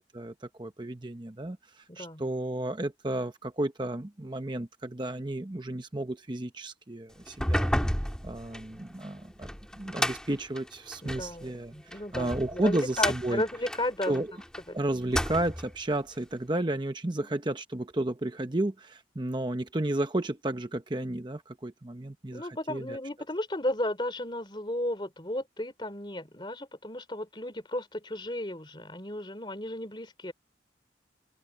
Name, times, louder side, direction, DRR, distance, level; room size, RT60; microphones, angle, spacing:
voice 1, 0.0-7.7 8.2-13.4 14.1-14.3 14.7-23.0, right 1 dB, 25° right, 0.9 m, -32 dB
voice 2, 1.9-2.2 11.0-14.2 14.7-14.8 22.3-30.3, left 1 dB, 25° left, 3.2 m, -34 dB
sound 1, 7.3-11.3 11.9-14.6 15.0-15.7, equal, 5° left, 1.9 m, -32 dB
open air
head